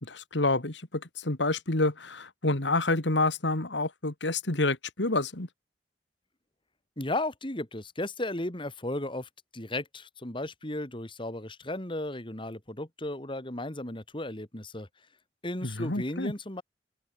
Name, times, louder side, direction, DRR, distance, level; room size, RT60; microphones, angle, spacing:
voice 1, 0.0-5.5 15.6-16.3, left 2 dB, 85° left, 2.7 m, -28 dB
voice 2, 7.0-14.9 15.4-16.6, left 1 dB, 30° left, 2.8 m, -35 dB
open air
head